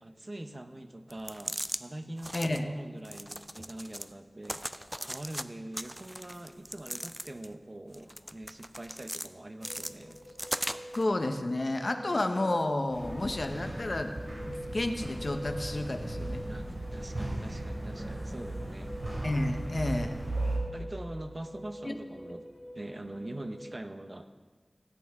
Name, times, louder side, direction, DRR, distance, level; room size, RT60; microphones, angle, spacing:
voice 1, 0.0-10.4 16.4-18.9 20.7-24.3, right 1 dB, 45° right, 7 dB, 0.7 m, -43 dB
sound 1, 1.1-1.8 2.2-2.6 3.0-4.1 4.4-5.4 5.7-7.5 7.9-9.3 9.6-11.0, equal, 10° right, 0.4 m, -38 dB
voice 2, 2.3-2.7 11.0-14.1 14.5-16.5 19.2-20.2 21.8-21.9, left 1 dB, 60° left, 6 dB, 0.8 m, -31 dB
sound 2, 9.6-23.8, equal, 35° left, 1.6 m, -46 dB
sound 3, 12.9-20.6, right 1 dB, 75° right, 2.8 m, -37 dB
17.0 x 8.7 x 3.5 m, 1.4 s
wide cardioid pair, 60°, 0 cm